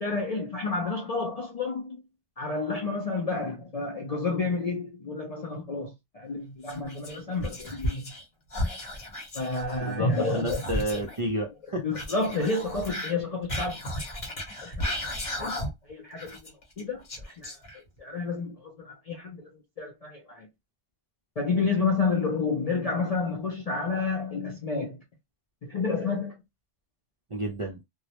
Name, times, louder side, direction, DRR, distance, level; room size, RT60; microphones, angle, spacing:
voice 1, 0.0-2.0 2.4-8.0 9.3-10.6 10.9-11.0 11.8-13.8 14.6-14.8 15.4-16.4 16.8-17.0 17.4-17.5 18.0-19.5 19.8-20.5 21.4-25.0 25.6-26.3, left 3 dB, 55° left, 0.4 m, -30 dB
Whispering, 6.6-8.2 8.5-11.2 11.9-15.9 16.2-18.0, left 1 dB, 35° left, 0.8 m, -34 dB
voice 2, 9.8-11.9 27.3-27.8, right 1 dB, 45° right, 0.4 m, -31 dB
2.3 x 2.0 x 2.8 m
omnidirectional pair, 1.2 m